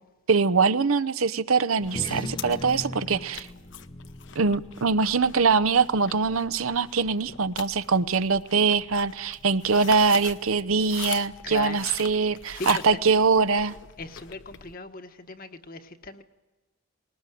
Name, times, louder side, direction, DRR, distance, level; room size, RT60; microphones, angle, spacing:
voice 1, 0.3-3.5 4.4-13.8, right 4 dB, 75° right, 15 dB, 0.8 m, -23 dB
sound 1, 1.8-14.8, left 8 dB, 55° left, 0.9 m, -43 dB
sound 2, 1.8-6.6, left 1 dB, 20° left, 0.7 m, -40 dB
voice 2, 11.4-13.0 14.0-16.2, left 3 dB, 40° left, 8 dB, 1.3 m, -39 dB
20.5 x 18.5 x 9.3 m, 1.2 s
head